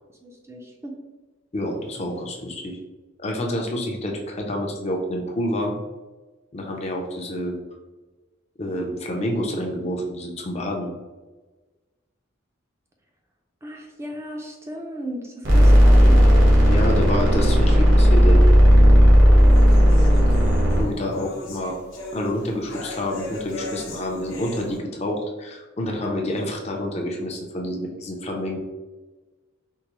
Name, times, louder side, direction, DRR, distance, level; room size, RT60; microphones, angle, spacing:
voice 1, 0.2-0.9 13.6-16.5, equal, 15° right, 0 dB, 0.5 m, -35 dB
voice 2, 1.5-2.8 3.2-5.7 6.5-7.6 8.6-10.9 16.7-18.4 20.8-21.8 22.1-28.6, left 1 dB, 30° left, 1 dB, 0.6 m, -28 dB
sound 1, 15.4-20.8, equal, 70° right, 1.2 m, -14 dB
sound 2, 18.4-24.8, left 1 dB, 85° left, 0.9 m, -38 dB
4.5 x 2.1 x 2.9 m, 1.2 s
head